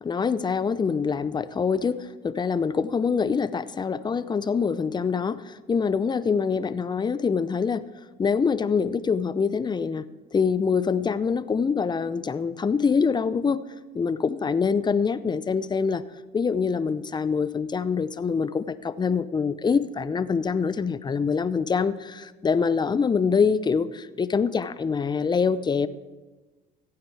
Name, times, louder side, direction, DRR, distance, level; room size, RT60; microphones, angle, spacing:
voice 1, 0.0-7.9 8.2-10.1 10.3-13.6 13.9-16.0 16.3-25.9, left 5 dB, 25° left, 15 dB, 0.6 m, -25 dB
15.0 x 8.8 x 4.8 m, 1.2 s
supercardioid pair, 80°, 19 cm